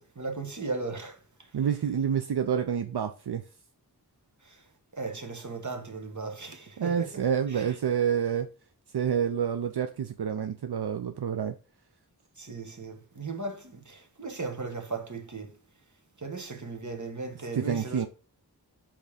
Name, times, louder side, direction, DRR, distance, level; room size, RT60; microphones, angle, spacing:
voice 1, 0.0-1.5 4.4-4.6 5.0-7.1 7.5-7.8 12.4-15.6 16.2-18.1, right 3 dB, 45° right, 1.2 m, -37 dB
voice 2, 1.5-3.4 6.8-8.5 8.9-11.6 17.5-18.1, right 8 dB, 75° right, 0.5 m, -28 dB
5.3 x 3.6 x 5.0 m
wide cardioid pair, 50°, 40 cm